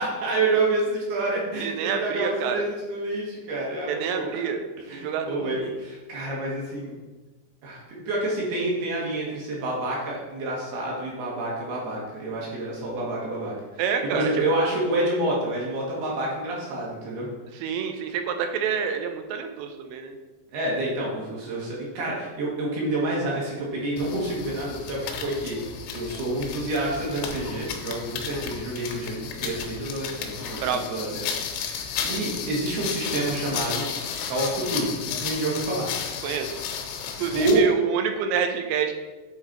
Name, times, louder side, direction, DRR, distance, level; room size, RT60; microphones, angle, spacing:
voice 1, 0.0-4.3 4.9-6.9 7.6-13.8 14.1-17.3 20.5-25.6 25.9-31.3 31.6-33.9 34.3-35.9 37.3-37.7, right 2 dB, 65° right, -3 dB, 3.2 m, -28 dB
voice 2, 1.6-2.6 3.9-4.6 4.9-5.7 13.8-14.3 17.5-20.1 30.6-30.8 36.2-36.6 37.2-38.9, right 7 dB, 80° right, 6 dB, 2.7 m, -27 dB
sound 1, 24.0-37.7, left 7 dB, 90° left, 3.0 m, -33 dB
8.8 x 3.9 x 4.3 m, 1.2 s
omnidirectional pair, 5.3 m